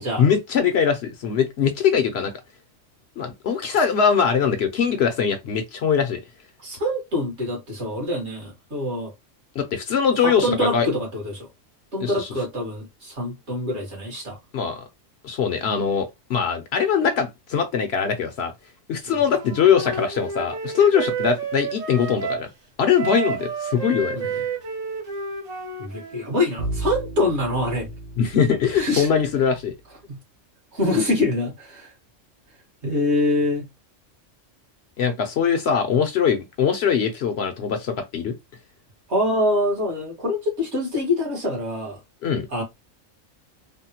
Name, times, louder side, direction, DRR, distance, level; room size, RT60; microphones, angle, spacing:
voice 1, 0.0-2.3 3.2-6.2 9.6-10.9 12.0-12.3 14.5-14.8 15.2-18.5 18.9-22.5 22.8-24.4 28.2-29.7 35.0-38.3 42.2-42.5, left 7 dB, 65° left, 0.7 m, -22 dB
voice 2, 6.6-9.1 10.2-11.5 11.9-14.4 19.2-19.3 24.1-24.4 25.8-27.9 28.8-29.1 30.1-30.2 30.7-31.9 32.8-33.6 39.1-42.0 42.5-42.6, left 1 dB, 60° right, 1.7 m, -25 dB
Wind instrument woodwind instrument, 19.3-22.5 22.9-26.3, right 5 dB, 80° right, 1.5 m, -30 dB
Bowed string instrument, 26.6-29.6, right 2 dB, 40° right, 0.7 m, -34 dB
3.5 x 2.1 x 2.8 m
omnidirectional pair, 1.3 m